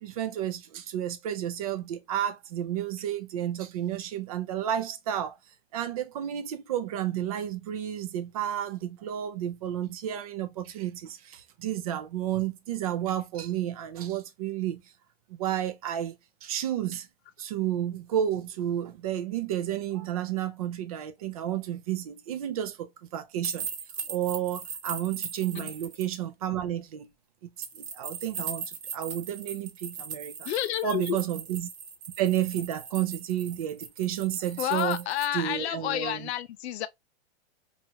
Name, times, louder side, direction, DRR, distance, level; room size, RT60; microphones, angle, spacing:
voice 1, 0.0-5.4 5.7-14.8 15.3-16.2 16.4-17.1 17.4-23.7 24.1-27.1 27.6-30.5 30.8-31.7 32.2-36.3, right 11 dB, 35° right, 0.4 m, -31 dB
sound 1, 23.4-26.1 27.6-35.3, right 6 dB, 80° right, 0.9 m, -39 dB
voice 2, 30.5-31.2 34.6-36.9, left 12 dB, 85° left, 0.5 m, -30 dB
2.8 x 2.4 x 2.7 m
supercardioid pair, 165°, 32 cm